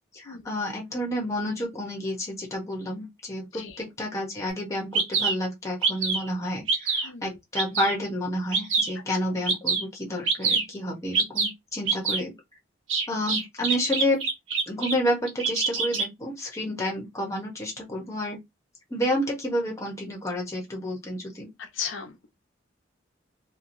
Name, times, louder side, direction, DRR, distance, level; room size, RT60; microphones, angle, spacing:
voice 1, 0.1-12.3 13.1-14.2 14.6-18.4 18.9-21.5, equal, 15° left, 0.8 m, -30 dB
Bird vocalization bird call bird song, 4.5-4.6 4.9-5.3 5.8-6.3 6.7-7.1 7.6-8.0 8.5-8.9 9.5-9.8 10.3-10.6 11.1-11.5 11.9-12.2 12.9-14.9 15.3-16.1, right 4 dB, 85° right, 1.0 m, -25 dB
voice 2, 7.0-7.4 21.6-22.3, left 7 dB, 75° left, 0.7 m, -36 dB
2.8 x 2.3 x 2.6 m
head